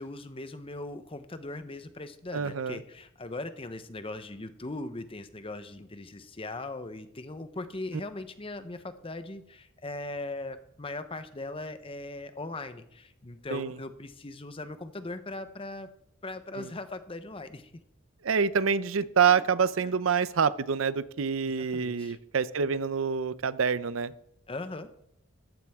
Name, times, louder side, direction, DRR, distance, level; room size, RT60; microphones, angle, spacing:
voice 1, 0.0-15.9 16.2-17.7 19.3-19.4 19.8-19.9 21.4-22.2 24.5-24.9, left 2 dB, 25° left, 11 dB, 0.8 m, -39 dB
voice 2, 2.3-2.8 13.5-13.8 16.6-16.7 18.2-24.1, right 6 dB, 75° right, 16 dB, 0.6 m, -27 dB
14.0 x 13.5 x 3.6 m, 0.75 s
head